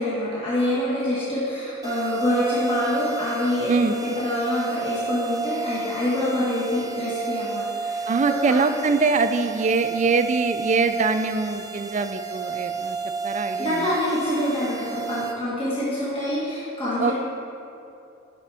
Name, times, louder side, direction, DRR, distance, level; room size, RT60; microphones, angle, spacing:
voice 1, 0.0-8.4 13.6-17.1, left 1 dB, 25° left, -9 dB, 1.5 m, -26 dB
sound 1, 1.8-15.3, right 4 dB, 20° right, 0.7 m, -32 dB
voice 2, 8.1-13.0 13.2-13.9 17.0-17.1, right 4 dB, 35° right, 9 dB, 0.3 m, -23 dB
11.0 x 5.9 x 3.4 m, 2.8 s
head